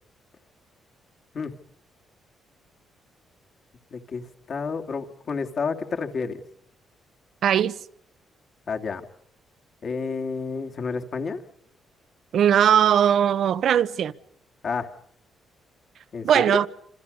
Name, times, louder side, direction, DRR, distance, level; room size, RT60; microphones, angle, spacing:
voice 1, 3.9-6.4 8.7-9.0 9.8-11.4 14.6-14.9 16.1-16.6, left 5 dB, 45° left, 2.5 m, -30 dB
voice 2, 7.4-7.8 12.3-14.1 16.2-16.7, right 9 dB, 60° right, 1.0 m, -19 dB
28.0 x 27.0 x 5.3 m
cardioid pair, 125°, 0 cm